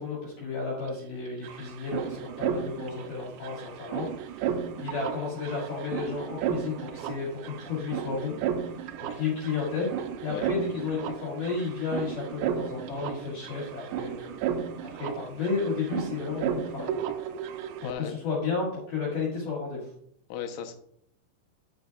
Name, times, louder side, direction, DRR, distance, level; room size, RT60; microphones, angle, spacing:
voice 1, 0.0-8.4 9.0-9.9 10.2-14.4 14.8-16.9 17.8-19.9, left 4 dB, 55° left, -5 dB, 3.0 m, -32 dB
sound 1, 0.9-1.0 1.1-17.9, right 8 dB, 85° right, 2.7 m, -34 dB
voice 2, 17.8-18.1 20.3-20.7, left 8 dB, 85° left, 5 dB, 3.2 m, -35 dB
9.5 x 8.3 x 2.3 m, 0.69 s
omnidirectional pair, 5.3 m